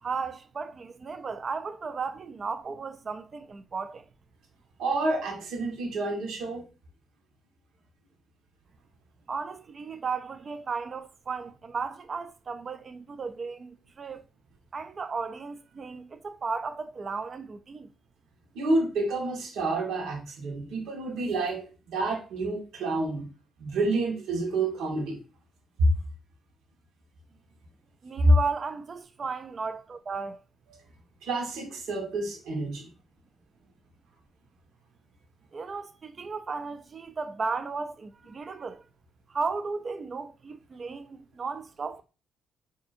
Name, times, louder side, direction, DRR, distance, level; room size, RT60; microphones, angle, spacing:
voice 1, 0.0-4.1 9.3-14.2 14.7-17.9 28.0-30.4 35.5-38.8 39.3-42.0, right 4 dB, 40° right, 0.3 m, -35 dB
voice 2, 4.8-6.6 18.5-23.3 23.6-25.2 28.2-28.4 31.2-32.9, right 2 dB, 80° right, 1.2 m, -28 dB
4.9 x 2.7 x 2.5 m
cardioid pair, 90°, 0 cm